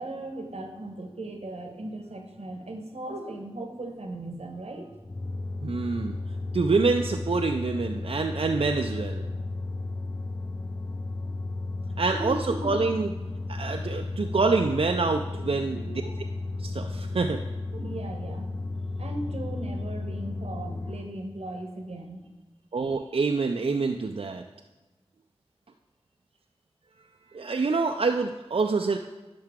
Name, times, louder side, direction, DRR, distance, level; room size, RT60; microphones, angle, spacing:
voice 1, 0.0-5.0 12.1-12.7 15.3-15.4 15.7-16.1 17.1-17.2 17.7-18.5 19.0-22.2, right 1 dB, 85° right, 4 dB, 1.0 m, -37 dB
sound 1, 5.0-21.1, left 2 dB, 25° left, 0.6 m, -34 dB
voice 2, 5.6-6.2 6.5-9.3 12.0-13.1 13.5-15.8 16.6-17.4 22.7-24.4 27.3-29.0, right 4 dB, 65° right, 3 dB, 0.4 m, -26 dB
10.5 x 5.6 x 3.6 m, 1.1 s
wide cardioid pair, 40°, 10 cm